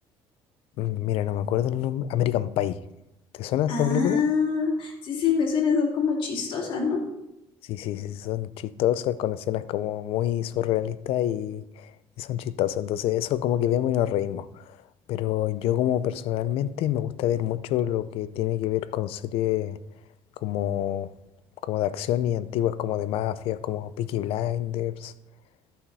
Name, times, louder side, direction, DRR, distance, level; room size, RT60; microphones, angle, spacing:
voice 1, 0.8-2.8 3.3-4.3 7.6-11.9 12.2-14.8 15.1-19.8 20.4-21.1 21.6-25.1, left 12 dB, 75° left, 0.5 m, -27 dB
voice 2, 3.7-7.0, left 5 dB, 60° left, 2.7 m, -25 dB
13.5 x 5.8 x 4.1 m
cardioid pair, 130°, 10 cm